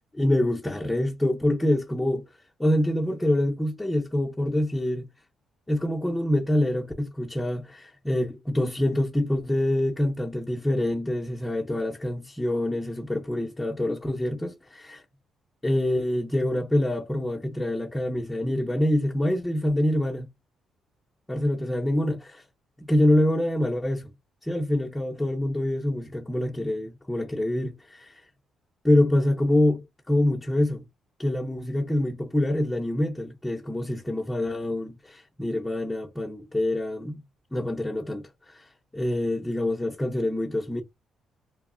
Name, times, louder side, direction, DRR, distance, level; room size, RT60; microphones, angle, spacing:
voice 1, 0.1-2.2 2.6-5.1 5.7-15.0 15.6-20.3 21.3-22.4 22.8-24.1 24.4-28.2 28.8-30.8 31.2-37.2 37.5-40.8, left 1 dB, 10° left, 0.5 m, -26 dB
3.0 x 2.0 x 2.4 m
cardioid pair, 90°, 0 cm